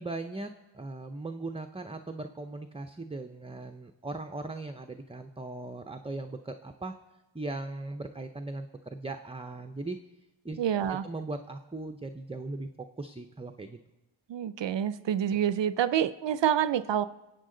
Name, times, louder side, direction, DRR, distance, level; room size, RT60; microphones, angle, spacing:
voice 1, 0.0-7.0 7.3-10.0 10.4-10.6 10.9-13.8, right 2 dB, 10° right, 7 dB, 0.5 m, -39 dB
voice 2, 10.6-11.1 14.3-17.0, right 10 dB, 65° right, 15 dB, 0.5 m, -27 dB
24.0 x 8.4 x 3.8 m, 1.0 s
wide cardioid pair, 80°, 48 cm